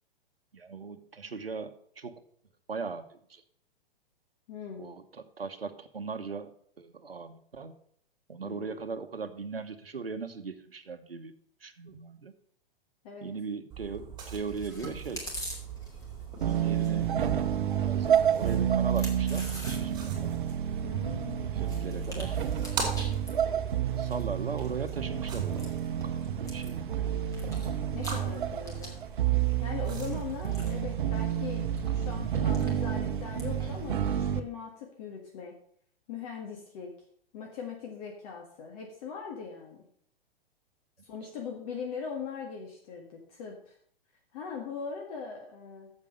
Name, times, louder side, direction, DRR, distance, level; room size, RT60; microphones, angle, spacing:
voice 1, 0.5-2.2 2.7-3.4 4.8-7.7 8.3-11.3 11.6-12.3 13.2-15.2 16.4-17.1 17.8-20.3 21.5-22.4 23.4-27.2 30.1-30.2, right 4 dB, 80° right, 8 dB, 1.0 m, -39 dB
voice 2, 4.5-4.9 8.4-8.6 13.0-13.3 20.8-21.7 22.8-23.2 27.9-29.0 29.3-35.6 36.1-36.9 37.3-39.8 41.0-43.7 44.3-45.9, left 6 dB, 40° left, 1 dB, 1.8 m, -40 dB
sound 1, 13.7-31.8, right 6 dB, 15° right, 3.5 m, -41 dB
Chewing mastication, 14.4-34.0, equal, 10° left, 2.7 m, -48 dB
sound 2, 16.4-34.4, right 9 dB, 60° right, 0.9 m, -30 dB
8.3 x 7.5 x 6.5 m, 0.64 s
figure-of-eight pair, 110°, 29 cm